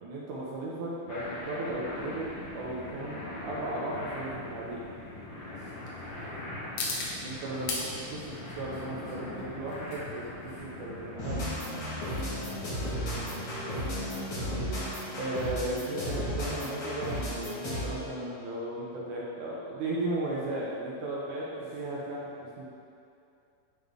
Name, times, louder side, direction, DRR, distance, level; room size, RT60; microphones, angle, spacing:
voice 1, 0.0-4.9 7.1-11.4 15.1-21.5 21.7-22.6, right 1 dB, 80° right, -5 dB, 1.8 m, -36 dB
sound 1, 1.1-15.9, left 1 dB, 70° left, 1.6 m, -42 dB
sound 2, 1.2-17.8, left 3 dB, 85° left, 2.6 m, -43 dB
voice 2, 5.3-5.9 12.3-12.6 13.1-13.4 13.7-13.9 21.3-21.6, left 1 dB, 65° right, -15 dB, 0.8 m, -50 dB
sound 3, 11.2-18.0, equal, 50° left, 1.7 m, -34 dB
9.2 x 3.7 x 3.5 m, 2.5 s
omnidirectional pair, 4.3 m